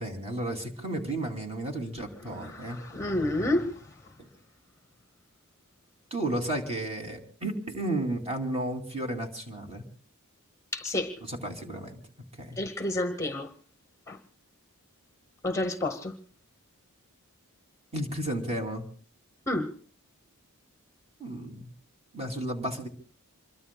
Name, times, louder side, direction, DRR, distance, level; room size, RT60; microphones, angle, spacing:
voice 1, 0.0-2.8 4.2-4.3 6.1-9.8 11.2-12.0 12.4-12.6 17.9-18.8 21.2-21.7 22.1-22.9, right 1 dB, 30° right, 2.7 m, -33 dB
voice 2, 2.9-3.7 10.7-11.1 12.6-13.5 14.1-14.2 15.4-16.1 19.5-19.7, left 1 dB, 15° left, 1.0 m, -29 dB
27.0 x 22.5 x 2.3 m
head